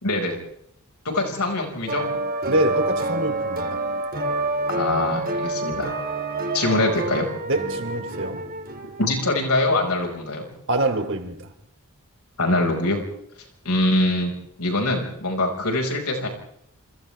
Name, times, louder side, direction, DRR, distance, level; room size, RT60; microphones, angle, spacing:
voice 1, 0.0-0.4 1.1-2.0 4.7-5.9 6.5-7.3 9.0-10.5 12.4-13.0 13.6-14.3 14.6-16.3, left 2 dB, 90° left, 5.5 m, -23 dB
sound 1, 1.9-9.5, right 2 dB, 40° right, 2.4 m, -28 dB
voice 2, 2.5-3.8 7.5-8.4 10.7-11.5, right 1 dB, 55° right, 3.3 m, -25 dB
29.0 x 28.5 x 3.5 m
head